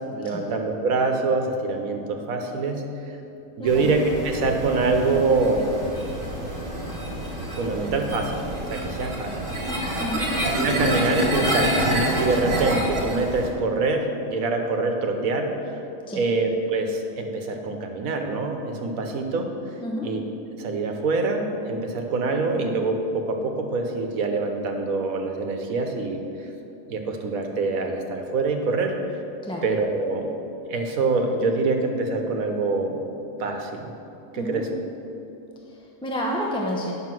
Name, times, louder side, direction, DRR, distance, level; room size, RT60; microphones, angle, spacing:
voice 1, 0.0-2.8 3.6-4.0 4.2-5.7 7.6-9.6 10.6-15.8 16.1-20.2 20.6-26.2 26.9-29.2 29.6-30.3 30.7-33.0 33.4-33.9 34.3-34.6, right 3 dB, 80° right, 3 dB, 1.4 m, -25 dB
voice 2, 3.6-3.9 10.0-10.3 16.1-16.2 19.8-20.1 29.4-29.7 34.3-34.6 35.7-36.9, equal, 5° left, -2 dB, 0.7 m, -30 dB
sound 1, 3.7-13.5, equal, 45° right, 2.0 m, -27 dB
9.5 x 6.4 x 6.0 m, 2.9 s
omnidirectional pair, 1.5 m